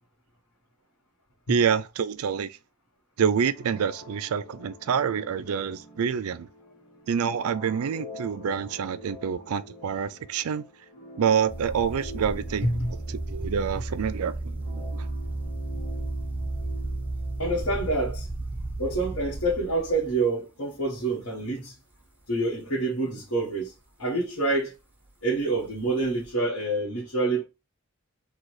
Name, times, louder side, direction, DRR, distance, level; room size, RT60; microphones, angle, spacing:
voice 1, 1.5-2.6 3.2-6.5 7.1-10.6 11.2-12.7 13.1-15.1, right 7 dB, 80° right, 0.4 m, -27 dB
sound 1, 3.5-18.1, left 1 dB, 30° left, 1.7 m, -46 dB
sound 2, 11.5-20.3 21.0-21.4 21.9-22.0 25.6-26.3, right 2 dB, 5° right, 0.6 m, -34 dB
voice 2, 12.6-12.9 17.4-18.3 18.8-21.7 22.3-23.7 24.0-24.7 25.2-27.4, right 2 dB, 70° left, 1.6 m, -27 dB
3.8 x 2.4 x 4.6 m
head